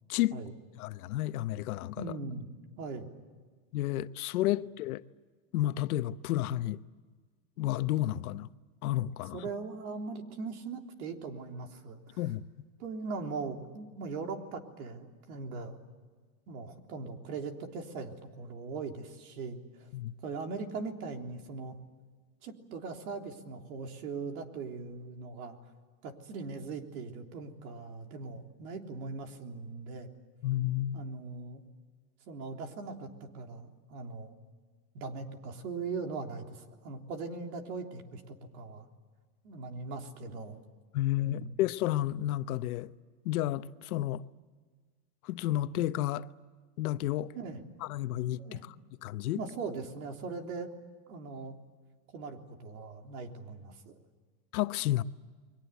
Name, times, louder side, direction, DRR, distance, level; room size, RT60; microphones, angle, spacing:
voice 1, 0.1-0.4 0.8-2.0 3.7-5.0 5.5-6.8 7.6-8.5 8.8-9.4 12.2-12.4 19.9-20.1 30.4-31.0 40.9-42.9 43.2-44.2 45.2-46.3 46.8-47.3 47.8-48.4 49.0-49.4 54.5-55.0, left 14 dB, 75° left, 1.0 m, -31 dB
voice 2, 2.0-2.5 2.8-3.1 9.3-12.2 12.8-15.8 16.5-19.9 20.2-21.8 22.4-25.6 26.0-30.1 30.9-31.6 32.3-34.3 34.9-38.9 39.4-40.6 41.2-41.5 47.4-47.6 48.4-48.7 49.4-50.7 51.1-51.5 52.1-54.0, right 4 dB, 75° right, 3.6 m, -40 dB
29.5 x 22.5 x 8.2 m
supercardioid pair, 155°, 44 cm